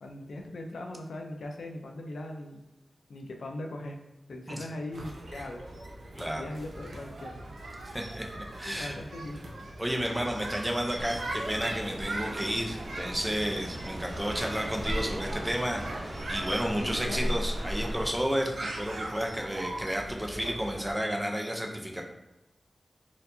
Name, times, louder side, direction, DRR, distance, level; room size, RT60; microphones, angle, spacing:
voice 1, 0.0-2.6 3.1-4.0 4.3-5.6 6.3-7.5 8.6-9.4 16.8-17.4, left 1 dB, 90° left, 2 dB, 0.4 m, -39 dB
sound 1, 4.9-20.9, right 1 dB, 85° right, 0.6 m, -40 dB
voice 2, 7.9-8.9 9.8-22.0, equal, 10° right, 1 dB, 0.5 m, -32 dB
sound 2, 10.9-18.1, equal, 30° right, 1.0 m, -37 dB
4.3 x 2.7 x 2.6 m, 0.95 s
wide cardioid pair, 75°, 0 cm